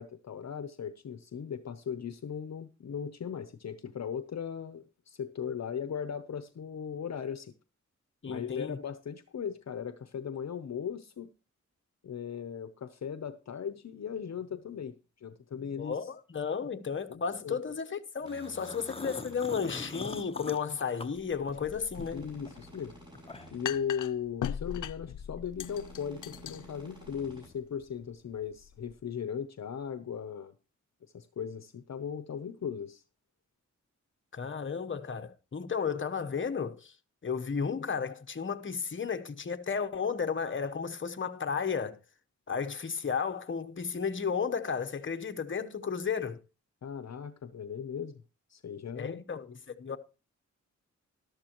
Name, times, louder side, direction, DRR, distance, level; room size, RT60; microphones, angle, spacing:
voice 1, 0.0-7.5 8.2-11.3 12.0-16.0 17.1-17.6 22.1-22.9 23.5-30.5 31.1-33.0 46.8-48.2 48.5-49.2, left 7 dB, 60° left, 0.8 m, -38 dB
voice 2, 8.2-8.8 15.8-22.3 34.3-36.9 37.2-42.0 42.5-46.4 49.0-50.0, left 6 dB, 40° left, 1.0 m, -33 dB
sound 1, 18.2-20.1 21.9-23.8 25.6-27.5, right 1 dB, 15° right, 7.6 m, -52 dB
sound 2, 18.3-21.8 22.2-23.7, left 3 dB, 20° left, 1.0 m, -43 dB
sound 3, 21.2-28.9, left 9 dB, 85° left, 0.5 m, -42 dB
13.5 x 12.0 x 3.0 m
wide cardioid pair, 90°, 30 cm